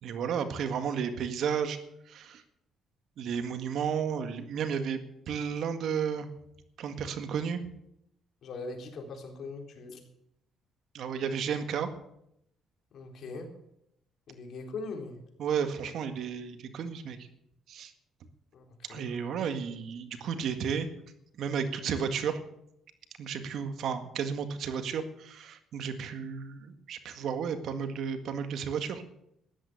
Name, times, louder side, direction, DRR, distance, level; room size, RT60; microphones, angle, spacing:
voice 1, 0.0-1.8 2.1-2.4 3.2-5.0 5.3-6.3 6.8-7.6 10.9-11.9 15.4-17.2 17.7-17.9 18.9-20.9 21.4-22.4 23.2-29.0, right 7 dB, 65° right, 9 dB, 1.8 m, -32 dB
voice 2, 8.4-10.0 12.9-13.5 14.3-15.2 18.5-19.1, left 3 dB, 60° left, 3 dB, 3.9 m, -41 dB
13.5 x 11.0 x 8.0 m, 0.77 s
cardioid pair, 100°, 0 cm